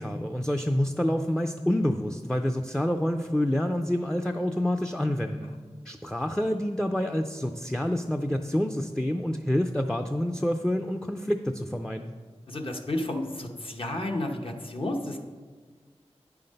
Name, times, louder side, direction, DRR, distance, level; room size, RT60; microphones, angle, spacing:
voice 1, 0.0-5.6 5.9-12.1, left 1 dB, 5° left, 5 dB, 0.4 m, -27 dB
voice 2, 12.5-15.2, left 1 dB, 50° left, 2 dB, 0.9 m, -31 dB
9.4 x 5.8 x 5.3 m, 1.5 s
wide cardioid pair, 65°, 11 cm